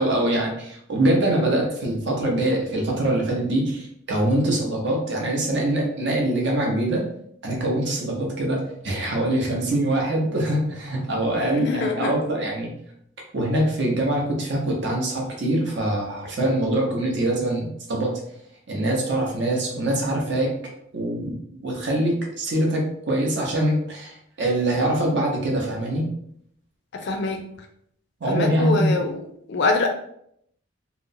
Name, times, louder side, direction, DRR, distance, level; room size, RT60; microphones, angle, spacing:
voice 1, 0.0-7.0 7.4-12.7 13.3-18.2 18.7-20.5 20.9-26.1 28.2-28.9, right 1 dB, 60° right, -1 dB, 0.7 m, -24 dB
voice 2, 11.4-12.2 27.0-27.4 28.3-29.2 29.5-29.9, left 3 dB, 60° left, 4 dB, 0.4 m, -24 dB
2.8 x 2.0 x 2.6 m, 0.70 s
head